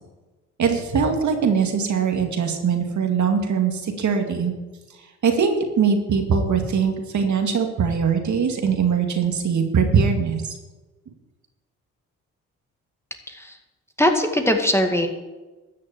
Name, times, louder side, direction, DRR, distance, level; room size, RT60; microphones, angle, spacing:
voice 1, 0.6-4.5 5.2-10.6, right 6 dB, 55° right, 4 dB, 2.2 m, -21 dB
voice 2, 14.0-15.1, left 1 dB, 5° left, 4 dB, 2.2 m, -20 dB
13.0 x 6.5 x 8.5 m, 1.2 s
supercardioid pair, 60°, 34 cm